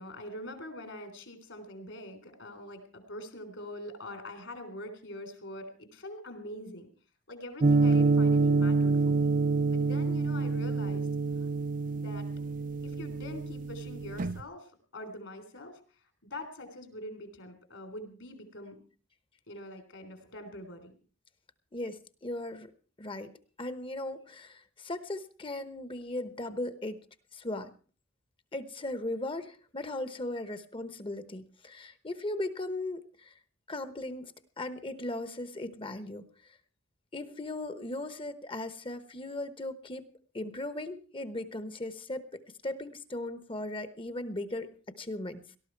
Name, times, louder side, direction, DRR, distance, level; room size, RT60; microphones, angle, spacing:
voice 1, 0.0-6.9 7.3-9.3 9.7-11.1 11.4-11.5 11.9-12.3 12.8-14.7 14.9-15.8 16.2-18.8 19.5-20.9, left 1 dB, 65° left, 8 dB, 3.5 m, -44 dB
sound 1, 7.6-14.4, right 3 dB, 40° right, 0.6 m, -27 dB
voice 2, 21.7-22.7 23.0-23.3 23.6-27.0 27.3-27.7 28.5-33.3 33.7-36.6 37.1-40.0 40.3-45.4, left 1 dB, 25° left, 12 dB, 1.0 m, -38 dB
18.5 x 13.0 x 4.6 m, 0.39 s
head